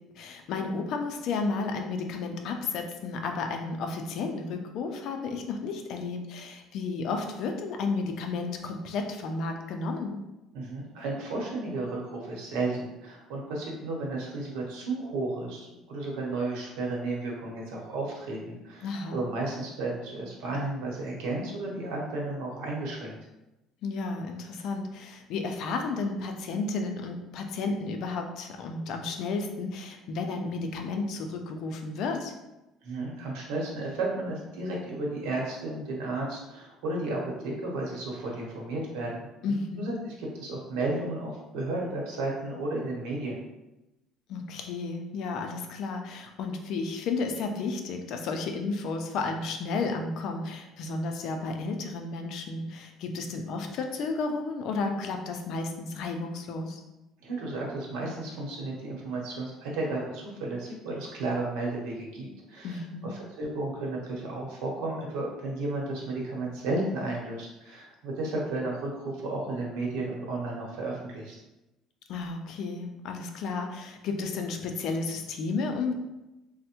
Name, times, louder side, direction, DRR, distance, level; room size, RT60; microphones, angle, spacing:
voice 1, 0.1-10.2 18.8-19.2 23.8-32.3 39.4-39.9 44.3-56.8 62.6-63.1 72.1-75.9, left 4 dB, 60° left, 4 dB, 0.4 m, -32 dB
voice 2, 10.5-23.2 32.8-39.3 39.8-43.4 57.2-71.4, right 2 dB, 85° right, -2 dB, 0.8 m, -33 dB
3.2 x 2.1 x 2.9 m, 0.98 s
cardioid pair, 145°, 0 cm